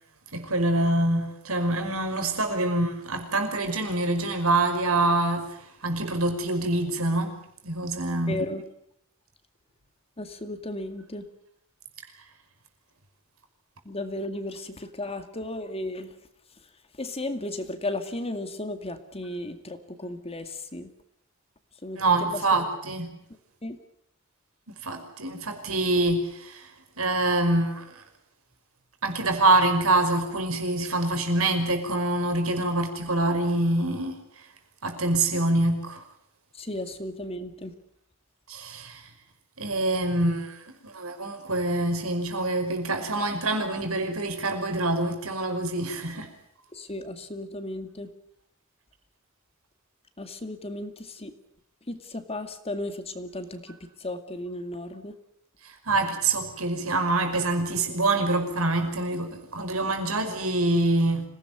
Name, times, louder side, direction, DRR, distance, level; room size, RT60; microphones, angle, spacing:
voice 1, 0.3-7.4 7.6-8.4 21.9-23.1 24.8-26.7 27.0-28.0 29.0-34.2 34.8-36.0 38.5-39.1 39.6-46.3 55.6-61.2, right 2 dB, 75° right, 5.5 m, -25 dB
voice 2, 8.3-8.6 10.2-11.3 13.8-16.2 17.0-20.9 21.8-22.4 23.6-23.8 36.5-37.7 46.7-48.1 50.2-51.3 51.9-55.1, left 1 dB, 30° left, 2.2 m, -35 dB
26.5 x 18.0 x 9.5 m
head